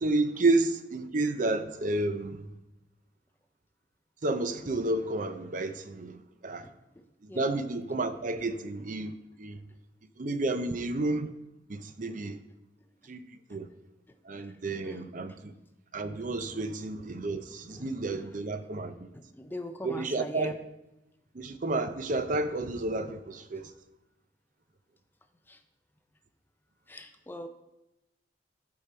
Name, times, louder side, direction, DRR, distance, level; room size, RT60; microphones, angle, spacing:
voice 1, 0.0-2.5 4.2-6.7 7.3-9.6 10.2-11.3 11.7-12.4 13.1-13.7 14.3-15.5 15.9-19.0 19.8-20.5 21.3-23.7, right 2 dB, 40° right, 0.5 m, -31 dB
voice 2, 19.1-20.6 25.5-25.6 26.9-27.5, left 1 dB, 10° left, 0.4 m, -40 dB
11.5 x 5.2 x 4.4 m
head